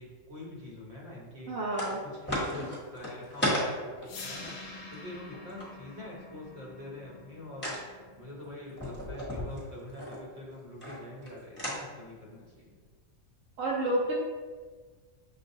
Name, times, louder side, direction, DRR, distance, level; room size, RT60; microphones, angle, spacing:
voice 1, 0.0-1.5 1.9-12.8, left 1 dB, 50° right, -4 dB, 1.2 m, -45 dB
voice 2, 1.5-2.0 13.6-14.1, right 1 dB, 70° right, -3 dB, 1.0 m, -29 dB
Shed Creaks, 1.7-2.0 2.3-5.7 7.6-7.8 8.7-10.2 10.8-11.3 11.6-11.8, equal, 10° left, 1.0 m, -33 dB
sound 1, 4.0-10.1, left 3 dB, 60° left, 0.7 m, -47 dB
6.4 x 2.4 x 2.6 m, 1.5 s
omnidirectional pair, 1.5 m